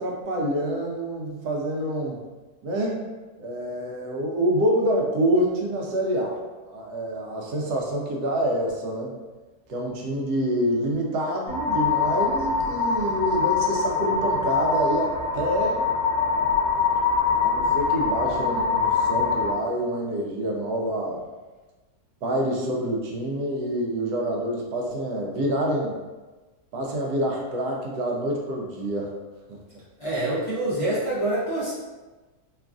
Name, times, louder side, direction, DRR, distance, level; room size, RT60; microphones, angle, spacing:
voice 1, 0.0-2.2 2.6-3.1 3.4-6.4 6.7-9.1 9.7-15.9 17.4-21.2 22.2-26.0 26.7-29.1 29.5-29.6, right 1 dB, 85° right, -1 dB, 1.1 m, -27 dB
sound 1, 11.5-19.5, left 5 dB, 80° left, 1.1 m, -24 dB
voice 2, 30.0-31.7, right 1 dB, 45° left, -11 dB, 0.4 m, -26 dB
3.0 x 2.4 x 2.4 m, 1.2 s
omnidirectional pair, 1.6 m